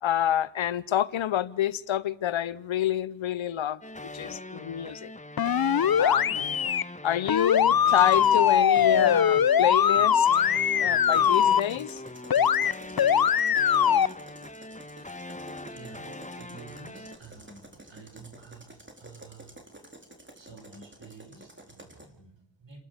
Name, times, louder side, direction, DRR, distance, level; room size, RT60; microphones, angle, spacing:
voice 1, 0.0-5.1 6.0-6.5 7.0-10.3 10.8-12.0, left 11 dB, 80° left, 0.8 m, -28 dB
sound 1, 3.8-17.2, left 2 dB, 15° left, 1.6 m, -41 dB
sound 2, 5.4-6.8 7.3-11.6 12.3-12.7 13.0-14.1, left 8 dB, 50° left, 0.8 m, -21 dB
sound 3, 7.9-8.6 10.9-22.1, right 1 dB, 25° right, 4.3 m, -50 dB
voice 2, 15.0-19.6 20.3-22.8, right 4 dB, 70° right, 5.2 m, -50 dB
29.5 x 12.0 x 8.3 m
cardioid pair, 40°, 46 cm